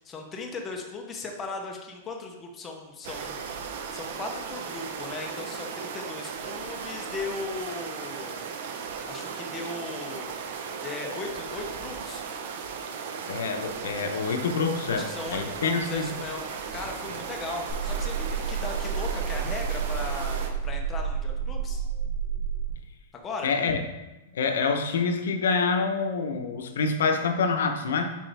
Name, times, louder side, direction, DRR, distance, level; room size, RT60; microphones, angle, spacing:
voice 1, 0.0-3.4 3.9-8.3 9.1-10.3 10.8-12.3 14.9-21.8 23.1-23.5, left 3 dB, 10° left, 1 dB, 0.7 m, -37 dB
sound 1, 3.0-20.5, right 6 dB, 45° right, 0.8 m, -36 dB
voice 2, 13.3-16.1 23.4-23.8 24.3-28.1, left 4 dB, 80° left, 6 dB, 0.8 m, -26 dB
sound 2, 17.7-22.7, right 7 dB, 15° right, 2.5 m, -30 dB
7.5 x 5.1 x 3.4 m, 1.0 s
supercardioid pair, 180°, 0 cm